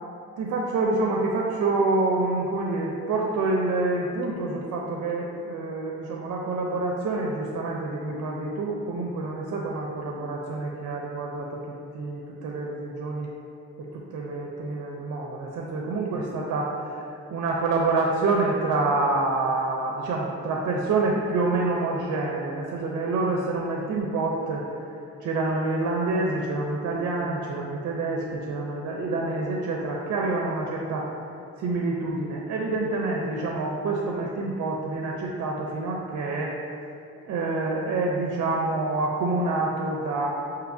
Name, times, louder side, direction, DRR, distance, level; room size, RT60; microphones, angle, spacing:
voice 1, 0.4-13.3 13.8-24.7 25.2-31.1 31.6-36.5 37.2-40.4, right 3 dB, 60° right, -1 dB, 0.5 m, -27 dB
5.8 x 2.7 x 2.6 m, 2.6 s
cardioid pair, 90°, 30 cm